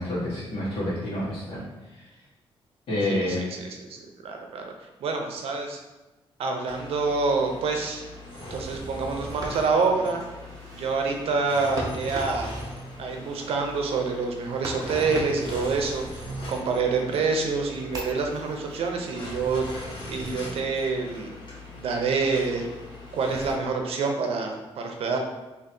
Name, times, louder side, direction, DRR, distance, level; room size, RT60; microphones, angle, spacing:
voice 1, 0.0-1.6 2.9-3.4, left 1 dB, 75° left, -10 dB, 1.4 m, -28 dB
voice 2, 3.1-4.7 5.0-5.8 6.4-8.1 8.5-10.2 10.7-12.5 13.0-19.7 20.1-21.3 21.7-22.7 23.1-25.2, right 4 dB, 75° right, 3 dB, 0.6 m, -27 dB
sound 1, 6.6-23.5, left 1 dB, 50° left, 1.1 m, -40 dB
sound 2, 9.2-16.8 17.3-19.9, right 1 dB, 35° right, 0.7 m, -41 dB
4.4 x 2.8 x 2.7 m, 1.1 s
wide cardioid pair, 170°, 10 cm